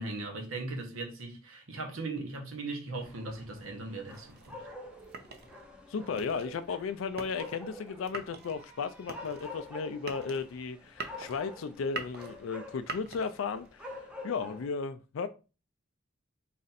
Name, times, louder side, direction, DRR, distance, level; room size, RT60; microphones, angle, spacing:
voice 1, 0.0-4.7, right 2 dB, 80° right, 1.0 m, -38 dB
sound 1, 3.0-14.7, left 1 dB, 5° right, 0.7 m, -48 dB
sound 2, 4.1-13.7, right 4 dB, 50° right, 0.7 m, -45 dB
voice 2, 5.9-15.3, left 5 dB, 70° left, 0.4 m, -35 dB
4.1 x 2.5 x 4.0 m
head